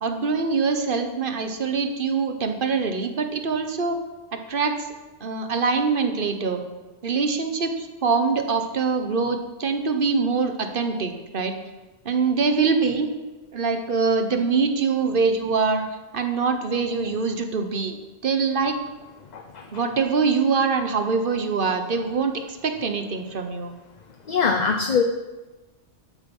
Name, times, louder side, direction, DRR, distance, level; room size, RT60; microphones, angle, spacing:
voice 1, 0.0-4.0 4.3-4.9 5.2-6.6 7.0-11.6 12.0-13.1 13.5-15.8 16.1-18.0 18.2-18.8 19.7-23.7, right 5 dB, 50° right, 6 dB, 1.3 m, -24 dB
voice 2, 19.2-19.8 24.2-25.0, left 5 dB, 40° left, 5 dB, 0.8 m, -23 dB
12.5 x 8.4 x 5.5 m, 1.2 s
omnidirectional pair, 1.2 m